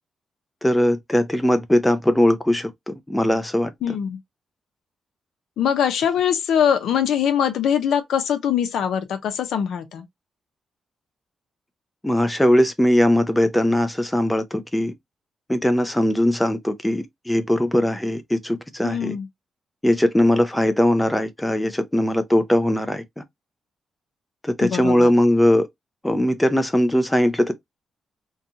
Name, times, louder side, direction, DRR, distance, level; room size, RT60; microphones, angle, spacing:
voice 1, 0.6-3.9 12.0-14.9 15.5-19.2 19.8-23.2 24.4-25.7 26.0-27.5, left 1 dB, 5° left, 0.4 m, -20 dB
voice 2, 3.8-4.2 5.6-10.0 18.8-19.3 24.6-25.1, left 8 dB, 90° left, 0.6 m, -22 dB
2.6 x 2.3 x 2.6 m
wide cardioid pair, 170°, 0 cm